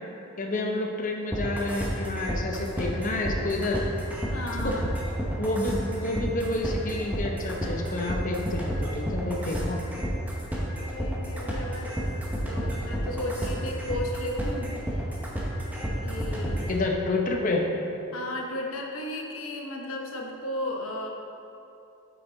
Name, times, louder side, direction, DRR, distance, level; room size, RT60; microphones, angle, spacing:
voice 1, 0.4-3.8 4.6-4.7 5.4-9.8 16.7-17.7, left 2 dB, 35° left, 1 dB, 0.7 m, -29 dB
sound 1, 1.3-16.7, equal, 5° right, 0.9 m, -31 dB
voice 2, 4.3-5.0 10.8-12.0 12.5-15.0 16.0-16.7 18.1-21.1, left 1 dB, 75° left, 1 dB, 0.9 m, -34 dB
8.4 x 6.0 x 3.9 m, 2.8 s
head